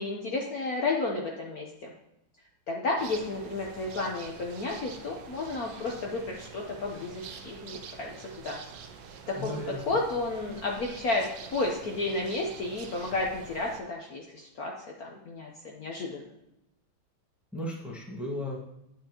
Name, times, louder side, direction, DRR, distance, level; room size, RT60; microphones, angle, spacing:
voice 1, 0.0-1.9 2.7-8.6 9.3-16.2, left 2 dB, 55° left, -1 dB, 1.2 m, -32 dB
sound 1, 3.0-13.8, right 6 dB, 70° right, 1.4 m, -46 dB
voice 2, 9.4-9.8 17.5-18.6, left 1 dB, ahead, -3 dB, 1.4 m, -35 dB
8.9 x 8.9 x 2.9 m, 0.85 s
omnidirectional pair, 2.2 m